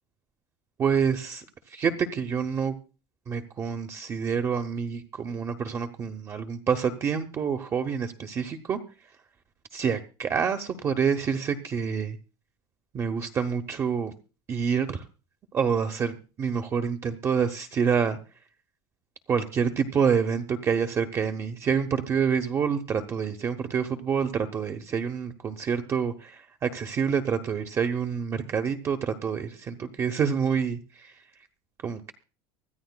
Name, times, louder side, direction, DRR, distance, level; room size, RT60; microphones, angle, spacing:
voice 1, 0.8-2.7 3.3-8.8 9.7-12.2 12.9-14.1 14.5-15.0 15.5-18.2 19.3-31.1 31.8-32.1, right 6 dB, 20° right, 7 dB, 0.8 m, -27 dB
24.0 x 14.0 x 2.2 m, 0.35 s
cardioid pair, 165°, 12 cm